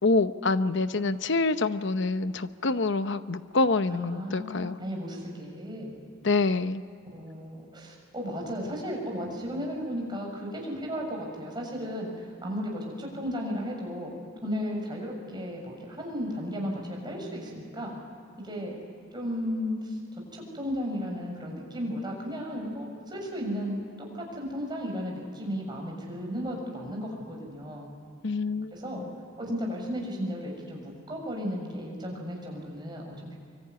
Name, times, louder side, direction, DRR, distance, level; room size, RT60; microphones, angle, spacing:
voice 1, 0.0-4.8 6.2-6.8 28.2-29.0, left 3 dB, 65° left, 11 dB, 0.9 m, -26 dB
voice 2, 3.9-6.0 7.1-14.1 14.4-17.9 18.4-18.7 19.1-20.0 20.3-23.8 24.1-27.9 28.7-29.0 29.4-33.4, equal, 20° right, 0 dB, 6.8 m, -34 dB
24.5 x 24.5 x 9.6 m, 2.5 s
head